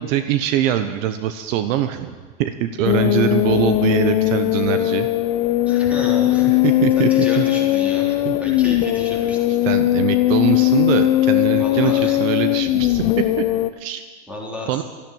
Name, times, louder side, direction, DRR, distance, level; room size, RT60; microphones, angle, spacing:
voice 1, 0.0-5.1 6.5-7.1 7.4-7.5 8.2-8.4 9.6-13.4 13.8-14.0 14.7-14.8, right 11 dB, 60° right, 9 dB, 1.0 m, -23 dB
sound 1, 2.8-13.7, left 15 dB, 55° left, 0.8 m, -19 dB
voice 2, 5.7-9.4 11.6-12.2 14.3-14.7, left 1 dB, 5° right, -3 dB, 4.0 m, -32 dB
13.5 x 10.5 x 8.7 m, 1.4 s
supercardioid pair, 130°, 44 cm